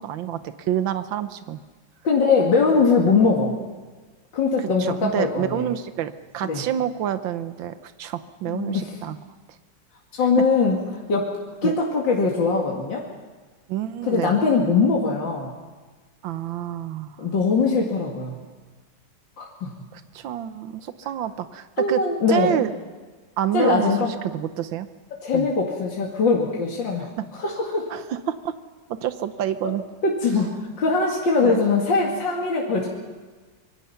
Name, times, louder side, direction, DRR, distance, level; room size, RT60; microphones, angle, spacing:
voice 1, 0.0-1.6 4.6-9.2 11.6-11.7 13.7-14.4 16.2-17.2 19.9-22.0 22.3-22.7 23.4-23.9 24.2-24.9 25.3-25.5 27.0-27.3 27.9-28.5 28.9-29.8 31.4-31.6, right 10 dB, 85° right, 11 dB, 1.7 m, -28 dB
voice 2, 2.0-3.6 4.3-5.7 6.4-6.6 8.4-8.9 10.1-11.3 11.6-13.0 14.0-15.5 17.2-18.4 19.4-19.7 21.8-22.5 23.5-24.1 25.2-27.1 27.4-27.9 29.6-29.7 30.0-32.9, left 4 dB, 75° left, -2 dB, 2.9 m, -21 dB
25.5 x 23.5 x 5.8 m, 1.4 s
omnidirectional pair, 2.0 m